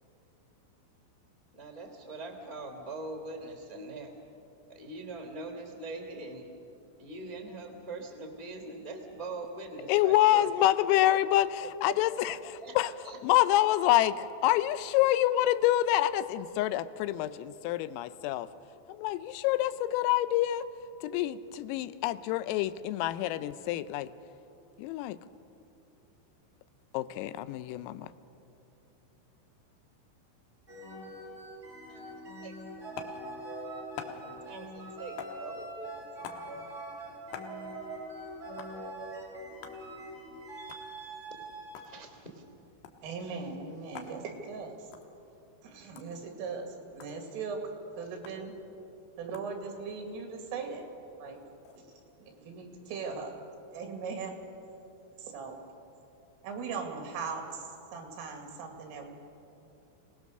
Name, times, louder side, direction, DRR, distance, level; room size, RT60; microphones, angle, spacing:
voice 1, 1.5-4.1 4.7-6.5 7.0-10.5 11.6-11.9 12.6-13.2 31.9-32.1 32.4-32.9 34.2-36.0 41.7-42.4, right 2 dB, 50° left, 4 dB, 0.6 m, -42 dB
voice 2, 9.9-12.9 13.2-18.5 18.9-20.7 21.0-24.1 24.8-25.2 26.9-28.1, left 14 dB, 85° left, 14 dB, 3.3 m, -27 dB
sound 1, 30.7-42.0 43.2-43.5, right 1 dB, 15° right, 3.3 m, -43 dB
sound 2, 33.0-33.2 34.0-34.2 35.2-35.4 36.2-36.5 37.3-37.6 38.6-38.8 39.6-39.8 40.7-40.9 41.6-41.9 42.8-43.0 43.9-44.2 44.9-45.1 46.0-46.1 47.0-47.1 48.2-48.4 49.3-49.5 51.1-51.8, left 9 dB, 70° left, 2.7 m, -44 dB
voice 3, 43.0-44.8 45.6-46.7 46.9-47.6 48.0-48.5 49.2-50.8 51.2-51.4 52.2-53.3 53.7-54.3 55.2-55.6 56.4-57.6 57.9-59.1, right 5 dB, 75° right, 3 dB, 4.8 m, -39 dB
25.5 x 19.0 x 6.6 m, 2.8 s
omnidirectional pair, 5.9 m